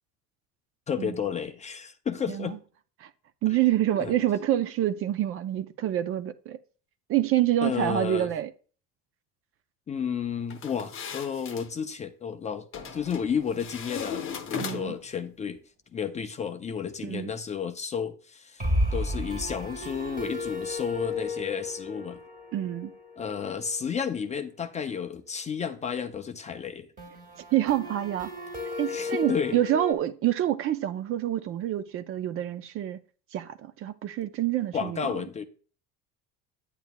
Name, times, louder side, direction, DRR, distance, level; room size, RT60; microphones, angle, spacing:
voice 1, 0.9-2.6 4.0-4.1 7.6-8.3 9.9-12.7 12.9-15.6 15.9-18.7 18.9-22.2 23.2-26.9 28.9-29.6 34.7-35.5, left 7 dB, 20° left, 0.4 m, -32 dB
voice 2, 3.4-6.6 7.1-8.5 14.6-15.0 17.0-17.3 22.5-22.9 27.5-28.3 28.8-33.0 33.3-35.1, right 12 dB, 40° right, 0.4 m, -27 dB
sound 1, 10.5-11.7 12.7-13.2 13.6-15.1, left 7 dB, 40° left, 0.8 m, -37 dB
sound 2, 12.7-13.9 14.2-14.3 14.6-14.7 18.6-24.3 27.0-29.9, left 2 dB, 25° right, 1.6 m, -34 dB
9.3 x 8.9 x 2.2 m
cardioid pair, 145°, 33 cm